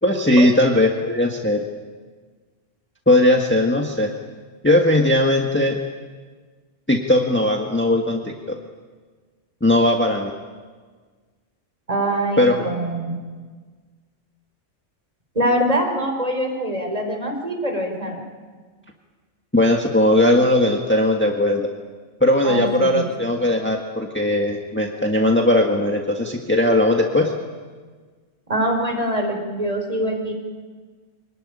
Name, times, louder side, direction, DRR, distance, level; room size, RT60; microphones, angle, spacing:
voice 1, 0.0-1.6 3.1-4.1 4.6-5.8 6.9-8.6 9.6-10.3 12.4-12.5 19.5-21.7 22.2-27.3, left 1 dB, 10° left, 1 dB, 1.7 m, -18 dB
voice 2, 11.9-13.1 15.3-18.2 22.4-23.0 28.5-30.3, right 1 dB, 30° right, 2 dB, 4.7 m, -23 dB
25.5 x 19.5 x 10.0 m, 1.5 s
omnidirectional pair, 1.3 m